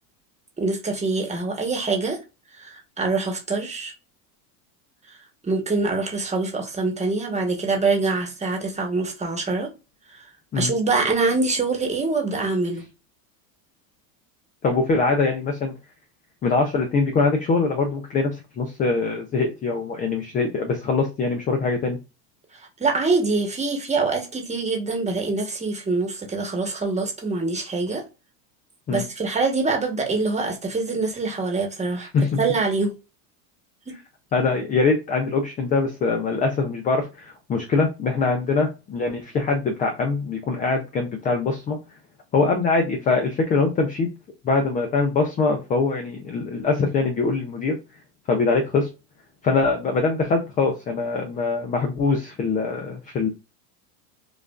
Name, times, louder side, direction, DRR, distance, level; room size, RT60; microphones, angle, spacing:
voice 1, 0.6-2.2 2.5-3.9 5.4-9.7 10.1-10.2 10.5-12.8 22.5-28.0 28.9-32.1 32.4-32.9 33.9-34.0, right 3 dB, 15° right, 1.1 m, -24 dB
voice 2, 14.6-15.7 16.4-22.0 28.9-29.0 32.1-32.4 34.3-41.8 42.3-44.1 44.4-47.8 48.3-48.9 49.4-53.3, left 4 dB, 20° left, 0.3 m, -23 dB
5.1 x 2.4 x 2.3 m
supercardioid pair, 120°, 48 cm